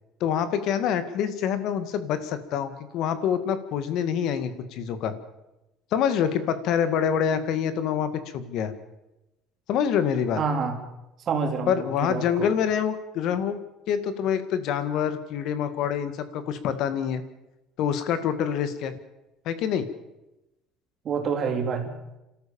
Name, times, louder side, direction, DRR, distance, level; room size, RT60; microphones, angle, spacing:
voice 1, 0.2-5.1 5.9-8.7 9.7-10.4 11.7-13.6 13.9-17.2 17.8-18.9 19.5-19.9, left 8 dB, 55° left, 12 dB, 2.0 m, -26 dB
voice 2, 10.4-10.8 11.3-12.5 21.1-21.9, right 5 dB, 35° right, 3 dB, 3.5 m, -27 dB
28.0 x 13.5 x 7.1 m, 0.94 s
cardioid pair, 165°, 0 cm